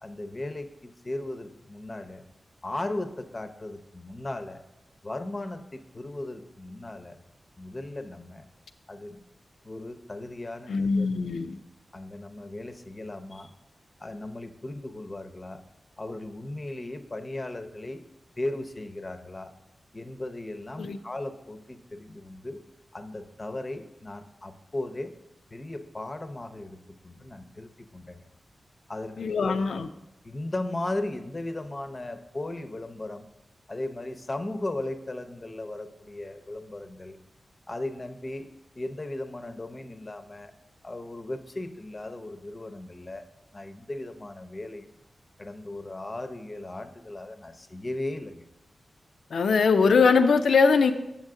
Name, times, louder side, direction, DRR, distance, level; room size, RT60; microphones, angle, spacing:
voice 1, 0.0-2.2 2.6-4.6 5.0-7.2 7.6-8.4 8.9-9.2 9.6-11.1 11.9-13.5 14.0-15.6 16.0-18.0 18.4-19.5 19.9-22.6 22.9-25.2 25.5-28.3 28.9-29.5 30.2-33.3 33.7-37.2 37.7-38.5 38.7-40.5 40.8-43.3 43.5-44.9 45.4-48.4, left 2 dB, 35° left, 8 dB, 0.7 m, -36 dB
voice 2, 10.7-11.6 20.8-21.0 29.2-29.9 49.3-50.9, left 5 dB, 85° left, 8 dB, 0.5 m, -21 dB
7.6 x 7.1 x 3.7 m, 0.89 s
cardioid pair, 60°, 0 cm